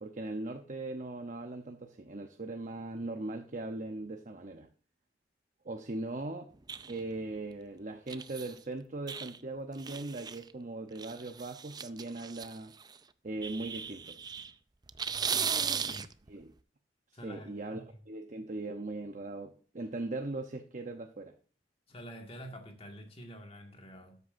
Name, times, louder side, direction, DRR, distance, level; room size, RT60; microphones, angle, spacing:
voice 1, 0.0-4.7 5.6-6.5 6.9-12.7 13.2-14.2 16.3-16.5 17.2-21.3, right 2 dB, 45° right, 0.8 m, -39 dB
sound 1, 6.7-7.2 8.1-8.6 9.1-9.4 9.8-10.5 10.9-13.0 13.4-14.5 14.9-16.3, right 6 dB, 25° right, 0.5 m, -36 dB
voice 2, 15.1-16.1 17.1-17.9 21.9-24.2, equal, 35° left, 2.0 m, -48 dB
13.0 x 8.2 x 2.6 m
head